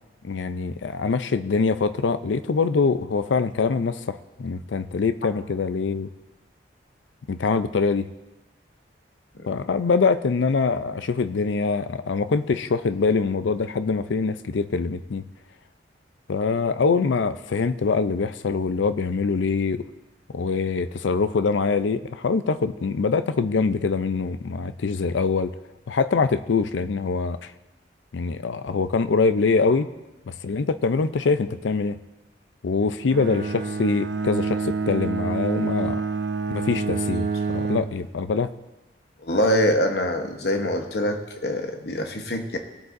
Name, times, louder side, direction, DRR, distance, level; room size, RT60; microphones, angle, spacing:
voice 1, 0.2-6.1 7.3-8.1 9.5-15.2 16.3-19.8 20.3-25.5 25.9-27.5 28.1-29.9 30.3-32.0 32.6-36.0 36.5-38.5, left 4 dB, 85° left, 12 dB, 0.5 m, -24 dB
Bowed string instrument, 33.1-38.0, right 4 dB, 65° right, 0.5 m, -27 dB
voice 2, 39.2-42.6, left 1 dB, 60° left, 4 dB, 1.0 m, -24 dB
18.5 x 8.0 x 2.6 m, 1.1 s
head